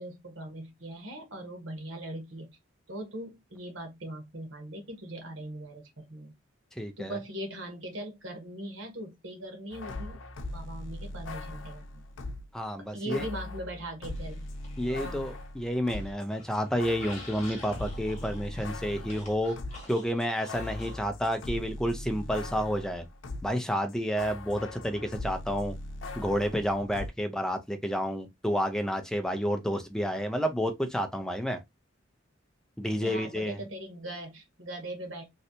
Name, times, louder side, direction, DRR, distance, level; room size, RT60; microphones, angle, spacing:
voice 1, 0.0-2.5 2.9-6.4 7.0-10.2 10.5-12.0 12.9-14.5 14.9-15.3 32.9-35.2, right 1 dB, 90° right, 1.3 m, -40 dB
voice 2, 6.8-7.2 12.5-13.2 14.8-19.6 19.9-23.0 23.4-25.8 26.2-31.6 32.8-33.6, equal, 5° left, 0.4 m, -30 dB
sound 1, 9.7-12.5 13.1-16.2 16.5-23.6 23.9-27.1, left 2 dB, 85° left, 0.5 m, -40 dB
sound 2, 14.1-15.5 15.8-21.1, left 2 dB, 40° left, 1.3 m, -48 dB
3.2 x 2.7 x 2.7 m
head